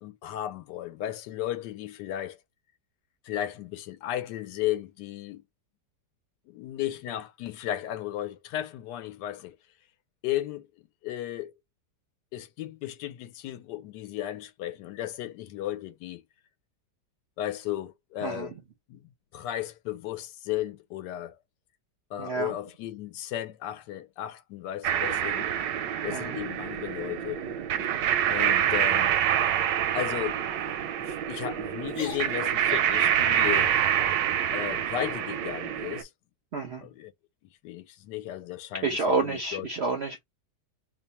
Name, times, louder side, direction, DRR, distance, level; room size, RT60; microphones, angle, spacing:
voice 1, 0.0-2.4 3.2-5.4 6.5-9.6 10.2-10.7 11.0-11.5 12.3-16.2 17.4-18.5 18.9-19.0 19.3-21.4 22.1-25.5 26.0-27.4 28.3-29.2 29.9-30.8 31.1-33.7 34.5-36.1 36.8-37.1 37.6-39.7, left 13 dB, 80° left, 1.2 m, -35 dB
voice 2, 22.2-22.5 26.1-26.3 36.5-36.8 38.8-40.2, right 4 dB, 65° right, 0.6 m, -29 dB
sound 1, 24.8-36.0, right 10 dB, 80° right, 1.2 m, -26 dB
sound 2, 26.1-26.7 27.1-27.4 27.8-28.0 28.4-28.8 29.4-29.7 30.2-30.4 31.1-31.5 31.8-33.1, left 3 dB, 40° left, 1.3 m, -45 dB
3.0 x 2.1 x 4.1 m
omnidirectional pair, 1.9 m